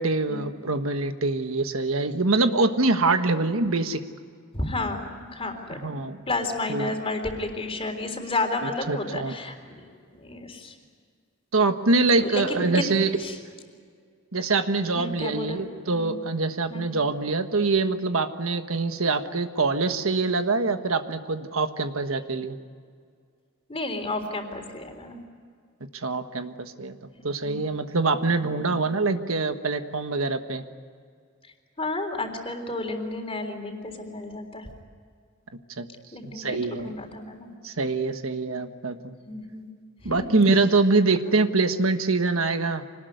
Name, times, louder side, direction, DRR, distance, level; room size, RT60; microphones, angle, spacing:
voice 1, 0.0-4.0 5.8-6.2 6.7-6.9 8.6-9.3 11.5-13.1 14.3-22.5 25.9-27.0 27.2-30.6 35.8-35.9 36.2-36.9 37.6-39.1 40.0-42.8, right 3 dB, 75° right, 8 dB, 1.4 m, -24 dB
voice 2, 2.9-3.2 4.5-5.9 6.3-9.7 10.1-10.7 12.2-12.8 13.2-13.4 15.0-15.6 15.9-16.2 16.7-17.1 23.7-25.2 27.4-27.7 28.4-28.9 31.8-34.7 36.1-37.5 39.3-39.7 40.0-40.3, left 2 dB, 25° left, 4 dB, 3.7 m, -32 dB
25.5 x 20.0 x 9.4 m, 2.1 s
head